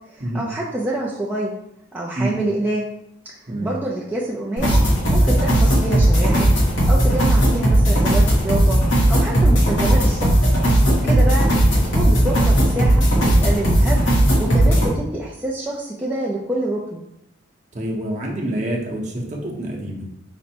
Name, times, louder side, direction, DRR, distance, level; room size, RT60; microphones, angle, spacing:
voice 1, 0.1-1.5 1.9-2.8 3.2-3.3 3.6-4.8 5.1-6.5 6.9-8.8 9.1-10.3 10.9-17.0, right 1 dB, 10° right, -5 dB, 0.4 m, -26 dB
sound 1, 4.6-14.9, right 1 dB, 80° left, 1.2 m, -16 dB
voice 2, 17.7-20.0, right 1 dB, 40° right, -2 dB, 0.8 m, -26 dB
5.1 x 2.1 x 4.3 m, 0.81 s
head